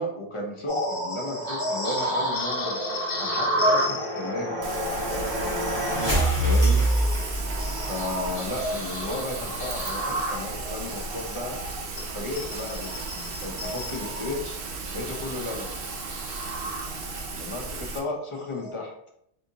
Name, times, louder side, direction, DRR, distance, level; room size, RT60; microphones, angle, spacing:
voice 1, 0.0-4.5 6.4-6.9 7.7-11.6 12.1-14.6 14.9-15.7 17.3-18.9, left 2 dB, 45° left, 0 dB, 0.4 m, -34 dB
sound 1, 0.7-17.3 17.8-18.0 18.5-18.7, equal, 30° left, 1.1 m, -31 dB
sound 2, 1.2-8.0, right 1 dB, 15° right, 1.4 m, -27 dB
Rain, 4.6-18.0, right 4 dB, 65° right, 0.7 m, -35 dB
3.5 x 2.7 x 2.7 m, 0.73 s
omnidirectional pair, 1.1 m